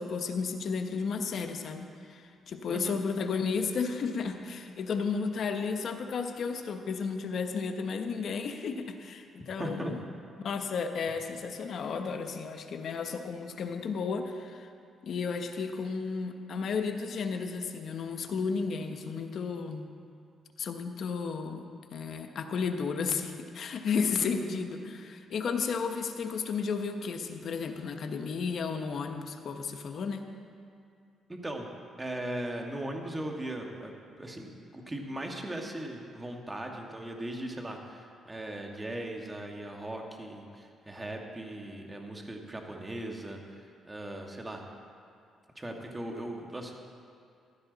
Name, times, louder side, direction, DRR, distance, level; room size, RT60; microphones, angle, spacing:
voice 1, 0.0-10.0 10.4-14.7 15.0-19.9 20.6-21.6 21.9-30.2, left 5 dB, 60° left, 6 dB, 1.0 m, -33 dB
voice 2, 2.7-3.0 9.6-9.9 24.2-24.5 31.3-31.7 32.0-44.6 45.6-46.7, right 1 dB, 15° right, 2 dB, 1.7 m, -38 dB
15.0 x 12.5 x 4.0 m, 2.4 s
cardioid pair, 90°, 0 cm